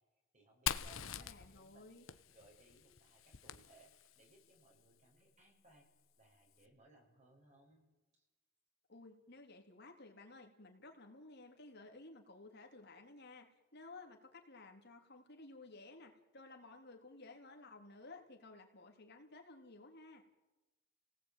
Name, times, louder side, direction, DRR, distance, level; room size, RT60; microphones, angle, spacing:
voice 1, 0.3-5.9 6.2-7.8 8.1-8.2, right 2 dB, 35° right, 1 dB, 7.2 m, -66 dB
Fire, 0.7-4.3, left 9 dB, 90° left, 1.2 m, -44 dB
voice 2, 1.0-2.1 8.9-20.2, left 2 dB, 55° left, 3 dB, 3.5 m, -56 dB
29.5 x 18.5 x 9.2 m, 1.1 s
head